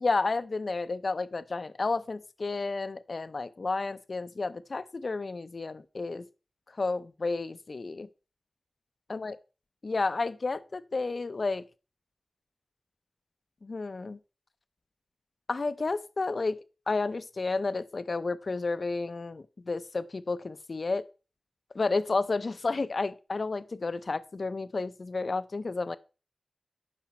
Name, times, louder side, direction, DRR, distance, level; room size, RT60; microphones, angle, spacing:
voice 1, 0.0-6.2 6.8-8.1 9.1-9.3 9.8-11.6 13.6-14.2 15.5-21.1 21.7-26.0, left 3 dB, 55° left, 0.4 m, -31 dB
11.5 x 4.9 x 4.1 m
wide cardioid pair, 85°, 0 cm